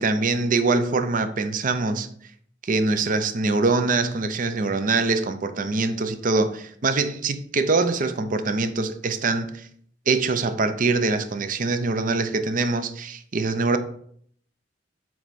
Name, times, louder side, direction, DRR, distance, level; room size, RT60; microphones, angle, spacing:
voice 1, 0.0-2.1 2.6-9.7 10.1-13.8, right 3 dB, 45° right, 10 dB, 0.6 m, -23 dB
7.7 x 4.6 x 4.1 m, 0.63 s
head